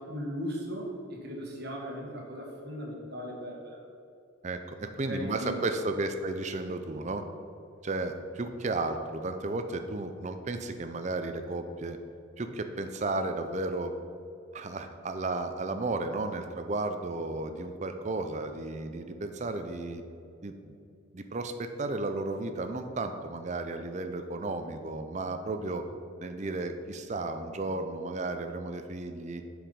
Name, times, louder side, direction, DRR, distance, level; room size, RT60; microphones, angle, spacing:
voice 1, 0.0-3.8 5.1-5.7, equal, 50° right, -1 dB, 1.4 m, -37 dB
voice 2, 4.4-7.2 7.8-12.0 12.4-13.9 14.5-20.0 20.4-20.8 21.1-25.8 26.2-29.4, right 2 dB, 35° right, 7 dB, 0.5 m, -33 dB
7.3 x 4.8 x 5.2 m, 2.5 s
head